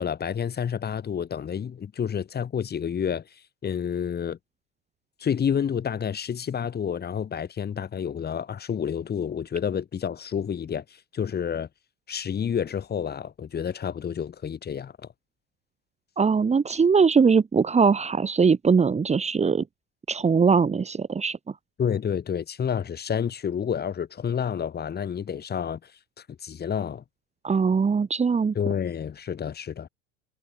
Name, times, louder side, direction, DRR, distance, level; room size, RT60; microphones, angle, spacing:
voice 1, 0.0-3.2 3.6-4.4 5.2-10.8 11.1-11.7 12.1-14.9 21.8-25.8 26.4-27.0 28.5-29.9, left 8 dB, 30° left, 6.7 m, -29 dB
voice 2, 16.2-19.6 20.1-21.5 27.4-28.5, right 5 dB, 20° right, 3.3 m, -21 dB
hypercardioid pair, 90°, 34 cm